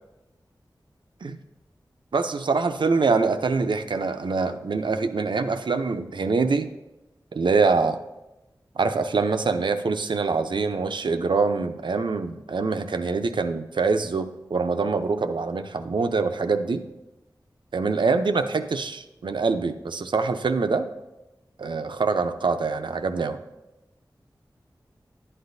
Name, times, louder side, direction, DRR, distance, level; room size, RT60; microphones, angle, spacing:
voice 1, 2.1-6.7 7.3-8.0 8.8-16.8 17.7-20.9 21.6-23.4, right 4 dB, 85° right, 8 dB, 0.6 m, -24 dB
11.0 x 9.8 x 2.7 m, 0.98 s
wide cardioid pair, 65°, 8 cm